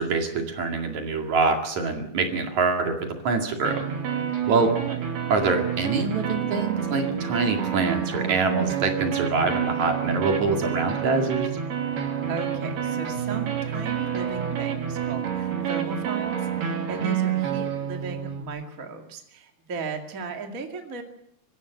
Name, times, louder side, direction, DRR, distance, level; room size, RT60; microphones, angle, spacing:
voice 1, 0.0-3.8 4.5-4.8 5.3-11.5, right 4 dB, 50° right, 4 dB, 3.1 m, -25 dB
sound 1, 3.6-18.4, right 8 dB, 65° right, 4.6 m, -28 dB
voice 2, 12.3-21.0, right 4 dB, 30° right, 4 dB, 1.6 m, -36 dB
25.0 x 14.0 x 9.2 m, 0.76 s
omnidirectional pair, 5.0 m